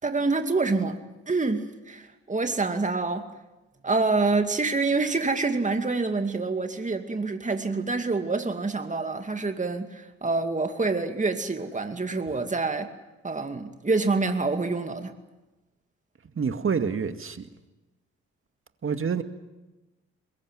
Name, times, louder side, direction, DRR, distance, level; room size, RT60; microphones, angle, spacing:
voice 1, 0.0-3.3 3.8-12.9 13.2-15.1, right 3 dB, 25° right, 6 dB, 2.5 m, -27 dB
voice 2, 16.4-17.5 18.8-19.2, right 6 dB, 40° right, 8 dB, 2.2 m, -27 dB
22.5 x 21.5 x 9.3 m, 1.1 s
hypercardioid pair, 50°, 32 cm